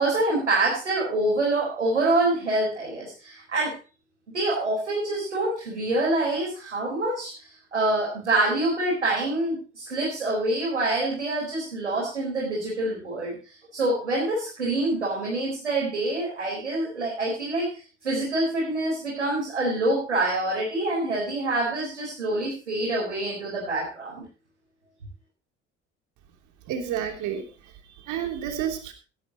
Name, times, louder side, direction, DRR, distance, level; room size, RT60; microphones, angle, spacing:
voice 1, 0.0-3.7 4.3-13.4 13.7-24.2, right 2 dB, 90° right, -4 dB, 4.6 m, -26 dB
voice 2, 26.7-28.9, right 9 dB, 60° right, 5 dB, 3.2 m, -31 dB
16.5 x 12.0 x 3.0 m, 0.35 s
figure-of-eight pair, 55°, 34 cm